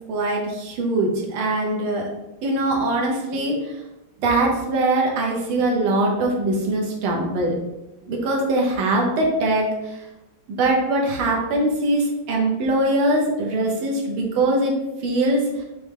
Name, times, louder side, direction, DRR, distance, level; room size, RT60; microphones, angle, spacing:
voice 1, 0.1-2.1 2.4-3.8 4.2-7.5 8.0-10.0 10.5-14.8 15.0-15.6, right 2 dB, 85° right, -1 dB, 1.7 m, -22 dB
4.8 x 3.2 x 3.3 m, 0.95 s
omnidirectional pair, 2.3 m